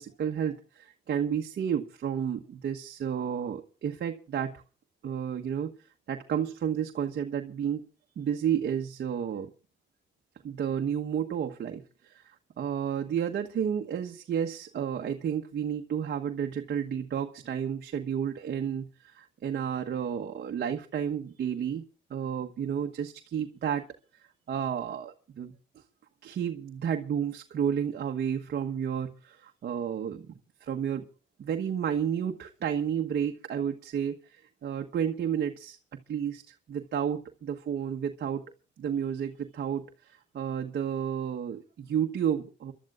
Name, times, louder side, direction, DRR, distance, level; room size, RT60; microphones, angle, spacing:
voice 1, 0.0-4.6 5.0-5.7 6.1-7.8 8.2-9.5 10.4-12.2 12.6-21.8 22.1-23.8 24.5-25.5 26.2-30.2 30.6-31.0 31.4-38.4 38.8-42.7, right 8 dB, 55° right, 3 dB, 1.2 m, -31 dB
29.5 x 12.5 x 2.5 m, 0.35 s
cardioid pair, 90°, 20 cm